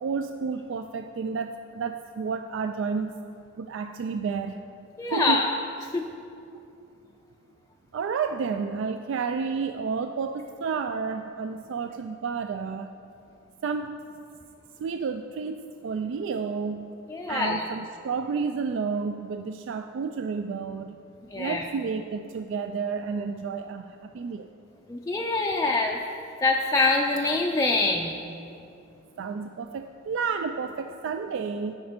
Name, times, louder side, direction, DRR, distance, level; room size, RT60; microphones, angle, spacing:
voice 1, 0.0-3.1 3.6-4.6 5.1-5.4 7.9-12.9 13.6-14.1 14.8-16.9 17.3-21.0 21.4-24.5 29.2-31.7, right 5 dB, 65° right, 7 dB, 0.3 m, -31 dB
voice 2, 5.0-5.6 5.9-6.0 17.1-17.6 21.3-21.6 24.9-26.0 26.4-28.2, left 3 dB, 15° left, 0 dB, 0.4 m, -24 dB
12.0 x 5.0 x 5.1 m, 2.6 s
head